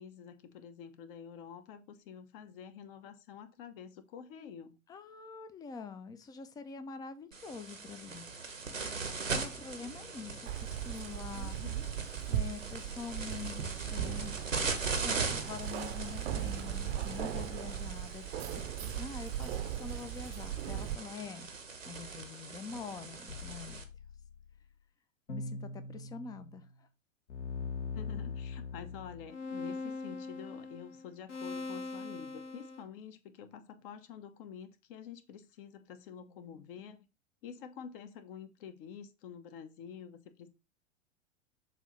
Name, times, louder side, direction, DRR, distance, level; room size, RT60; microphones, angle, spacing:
voice 1, 0.0-4.7 11.3-11.8 27.7-37.0 37.4-40.5, left 7 dB, 45° left, 10 dB, 1.0 m, -48 dB
voice 2, 4.9-8.3 9.3-11.6 12.3-14.3 15.0-21.5 21.9-23.8 25.3-26.9, left 5 dB, 10° left, 12 dB, 0.4 m, -45 dB
sound 1, 7.3-23.8, right 4 dB, 90° right, 1.2 m, -40 dB
Keys jangling, 10.5-21.0, right 11 dB, 55° right, 0.8 m, -38 dB
sound 2, 23.3-24.6 25.3-26.7 27.3-32.8, left 4 dB, 70° left, 1.5 m, -41 dB
7.2 x 2.7 x 5.1 m, 0.28 s
figure-of-eight pair, 95°, 38 cm